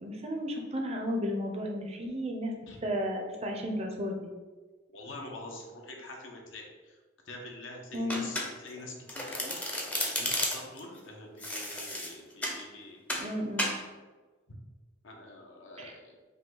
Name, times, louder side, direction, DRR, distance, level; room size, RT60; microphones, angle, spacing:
voice 1, 0.0-2.5 2.8-4.2 7.9-8.2 13.2-13.7 15.8-16.0, equal, 30° right, 2 dB, 0.6 m, -33 dB
voice 2, 4.9-7.0 7.3-9.6 10.0-13.0 14.5-14.6 15.0-16.1, left 2 dB, 70° left, 1 dB, 0.8 m, -45 dB
Domestic sounds home sounds, 8.1-8.8 9.1-10.8 11.4-12.6 13.1-13.3 13.6-13.8, left 1 dB, 10° left, 0.6 m, -33 dB
5.3 x 2.3 x 3.8 m, 1.3 s
head